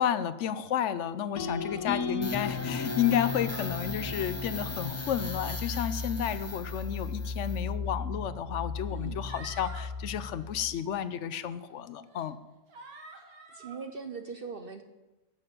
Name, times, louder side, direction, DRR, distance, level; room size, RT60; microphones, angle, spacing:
voice 1, 0.0-12.4, left 9 dB, 60° left, 14 dB, 0.9 m, -31 dB
sound 1, 1.4-5.5, left 4 dB, 85° left, 1.8 m, -37 dB
sound 2, 2.2-10.7, left 4 dB, 15° left, 0.6 m, -36 dB
sound 3, 3.1-3.7 4.3-4.7 5.1-5.5 6.4-6.8 7.8-7.9 8.9-9.9 10.3-10.6 11.3-11.4 12.0-12.3 12.7-13.8, right 3 dB, 80° right, 2.0 m, -50 dB
voice 2, 8.9-9.2 13.5-14.8, right 5 dB, 50° right, 7 dB, 0.7 m, -41 dB
11.5 x 6.6 x 7.6 m, 1.1 s
omnidirectional pair, 1.6 m